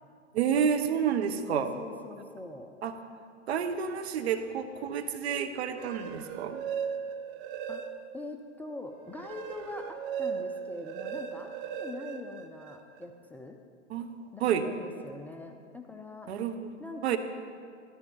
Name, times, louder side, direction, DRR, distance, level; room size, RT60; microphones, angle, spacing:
voice 1, 0.3-1.7 2.8-2.9 3.5-6.6 13.9-14.6 16.3-16.5 17.0-17.2, right 8 dB, 60° right, 8 dB, 1.1 m, -29 dB
voice 2, 1.4-2.7 7.7-7.8 8.1-13.6 14.3-16.3 16.8-17.2, left 2 dB, 5° left, 2 dB, 0.5 m, -43 dB
sound 1, 5.7-8.3 8.7-13.0, right 7 dB, 45° right, 0.9 m, -38 dB
13.5 x 13.0 x 4.3 m, 2.2 s
figure-of-eight pair, 105°, 36 cm